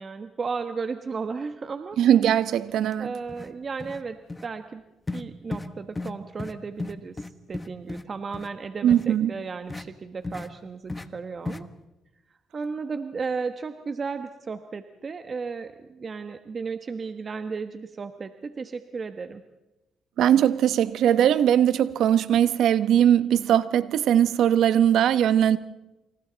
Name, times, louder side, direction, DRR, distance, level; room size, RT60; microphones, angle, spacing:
voice 1, 0.0-2.0 3.0-4.8 5.1-11.7 12.5-19.4, right 5 dB, 40° right, 1.2 m, -34 dB
voice 2, 2.0-3.1 8.8-9.3 20.2-25.6, right 10 dB, 75° right, 1.0 m, -20 dB
sound 1, 2.8-2.9 3.3-3.5 3.8-4.0 4.3-4.5 5.1-5.2 5.5-5.7 6.0-6.1 6.4-6.5 6.8-8.0 8.3-8.5 8.9-9.1 9.7-9.8 10.2-10.5 10.9-11.1 11.4-11.6, left 2 dB, 20° left, 1.2 m, -34 dB
28.5 x 27.5 x 4.0 m
cardioid pair, 90°, 0 cm